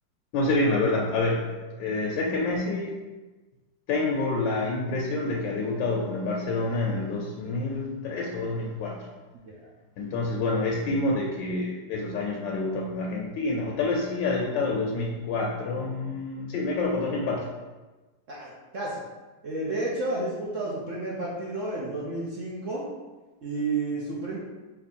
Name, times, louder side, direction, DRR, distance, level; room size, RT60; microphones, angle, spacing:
voice 1, 0.3-1.4 1.8-3.0 3.9-9.1 10.0-17.5, left 2 dB, 80° left, -2 dB, 1.3 m, -27 dB
voice 2, 18.3-19.0 19.4-22.9 23.4-24.4, right 2 dB, 55° right, -6 dB, 0.9 m, -31 dB
4.4 x 2.6 x 4.2 m, 1.2 s
omnidirectional pair, 2.0 m